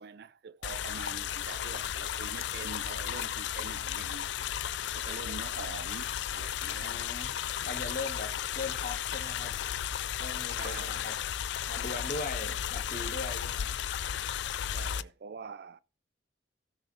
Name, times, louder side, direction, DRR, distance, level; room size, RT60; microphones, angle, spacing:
voice 1, 0.0-4.3 4.9-7.0 10.5-11.0 14.7-15.8, right 5 dB, 60° right, 0.4 m, -45 dB
sound 1, 0.6-15.0, left 10 dB, 70° left, 0.3 m, -34 dB
voice 2, 6.8-7.3 7.6-9.5 10.2-11.2 11.7-13.8, left 3 dB, 45° left, 1.6 m, -39 dB
16.0 x 6.3 x 2.7 m
head